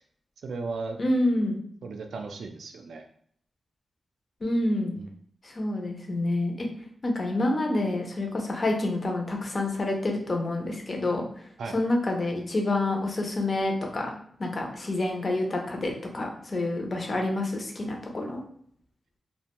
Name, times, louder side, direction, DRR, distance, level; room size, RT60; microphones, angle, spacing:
voice 1, 0.4-1.0 1.8-3.1 5.0-5.1 11.6-11.7, right 4 dB, 80° right, 5 dB, 0.3 m, -36 dB
voice 2, 1.0-1.6 4.4-4.9 5.4-6.7 7.0-11.3 11.7-14.1 14.4-18.4, left 2 dB, 30° left, 1 dB, 0.4 m, -28 dB
2.5 x 2.1 x 2.8 m, 0.62 s
wide cardioid pair, 175°, 0 cm